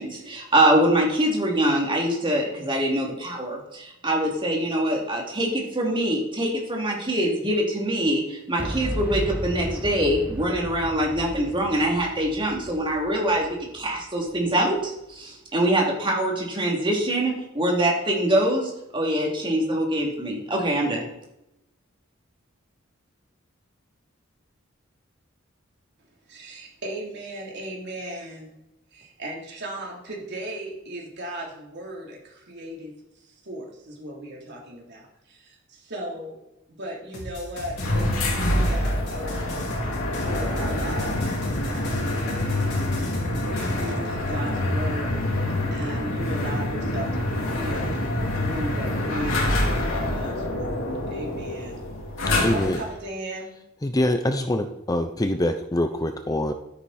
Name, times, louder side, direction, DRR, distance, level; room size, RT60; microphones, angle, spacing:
voice 1, 0.0-21.1, right 1 dB, 25° right, -1 dB, 3.0 m, -24 dB
Boom, 8.6-14.5, equal, 5° right, 1.0 m, -34 dB
voice 2, 26.3-28.5 28.9-33.0 33.3-36.4 36.7-39.5 40.2-43.1 43.5-45.2 45.7-48.0 48.3-51.8 52.3-53.5, right 1 dB, 60° right, -1 dB, 3.6 m, -36 dB
sound 1, 37.1-43.9, left 1 dB, 60° left, 4.9 m, -38 dB
sound 2, 37.8-53.0, left 1 dB, 90° left, 2.8 m, -26 dB
voice 3, 52.4-52.8 53.8-56.5, left 1 dB, 20° left, 8 dB, 0.6 m, -24 dB
12.5 x 10.0 x 4.3 m, 0.87 s
head